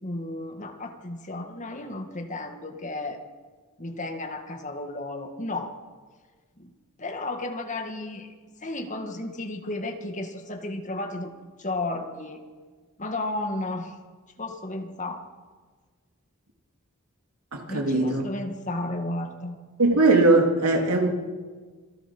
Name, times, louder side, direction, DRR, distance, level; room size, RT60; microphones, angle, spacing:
voice 1, 0.0-3.2 3.8-5.7 6.6-6.7 7.0-8.3 8.6-12.4 13.0-14.0 14.4-15.2 17.7-19.6, left 2 dB, 35° left, 5 dB, 1.9 m, -33 dB
voice 2, 17.5-18.2 19.8-21.1, right 2 dB, 90° right, 2 dB, 3.1 m, -20 dB
26.5 x 16.5 x 6.2 m, 1.5 s
head